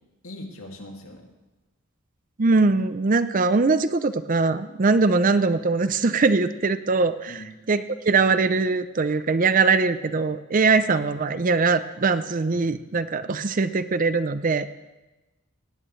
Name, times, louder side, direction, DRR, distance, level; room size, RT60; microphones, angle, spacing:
voice 1, 0.2-1.3 4.9-5.0 7.3-7.5 10.6-10.7 12.5-12.7, left 1 dB, 70° left, 1 dB, 2.4 m, -41 dB
voice 2, 2.4-14.7, right 4 dB, 35° right, 12 dB, 0.5 m, -22 dB
19.0 x 17.5 x 3.2 m, 1.1 s
head